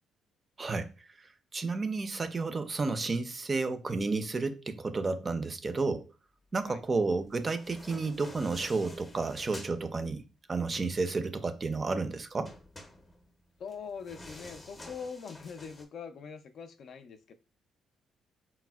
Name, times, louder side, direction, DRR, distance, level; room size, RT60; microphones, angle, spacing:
voice 1, 0.6-0.9 1.2-6.1 6.5-10.2 10.5-12.5, right 3 dB, 35° right, 0.4 m, -31 dB
sound 1, 7.3-9.8 12.4-15.8, left 1 dB, 20° left, 0.6 m, -49 dB
voice 2, 13.6-17.3, left 6 dB, 65° left, 0.3 m, -43 dB
4.1 x 2.0 x 2.2 m
cardioid pair, 90°, 0 cm